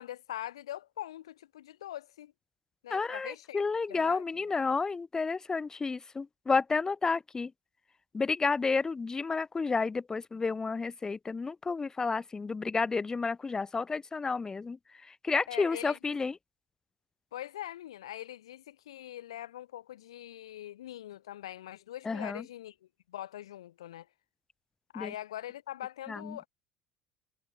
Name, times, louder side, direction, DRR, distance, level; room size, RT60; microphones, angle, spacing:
voice 1, 0.0-2.3 2.8-3.6 3.9-4.2 15.5-16.0 17.3-22.7 23.1-24.1 24.9-26.5, left 12 dB, 75° left, 0.6 m, -42 dB
voice 2, 2.9-7.5 8.1-16.4 22.0-22.4 24.9-25.1 26.1-26.4, left 4 dB, 20° left, 0.8 m, -31 dB
figure-of-eight pair, 65°, 3 cm